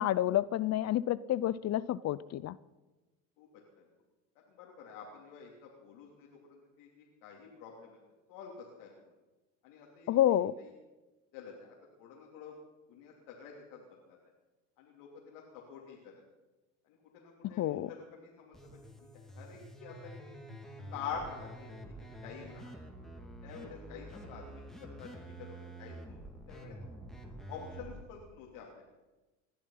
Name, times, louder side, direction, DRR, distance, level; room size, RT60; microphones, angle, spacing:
voice 1, 0.0-2.6 10.1-10.5 17.4-17.9, left 12 dB, 45° left, 19 dB, 0.6 m, -29 dB
voice 2, 4.5-8.0 8.3-8.9 9.6-10.2 10.6-10.7 11.3-12.6 12.9-14.2 14.8-16.1 16.8-18.6 18.8-20.2 20.9-21.9 22.2-22.7 23.4-26.2 26.5-26.8 27.5-28.8, left 6 dB, 80° left, -2 dB, 3.3 m, -47 dB
sound 1, 18.5-28.0, right 1 dB, ahead, 2.8 m, -48 dB
20.5 x 12.5 x 5.8 m, 1.1 s
supercardioid pair, 90°, 38 cm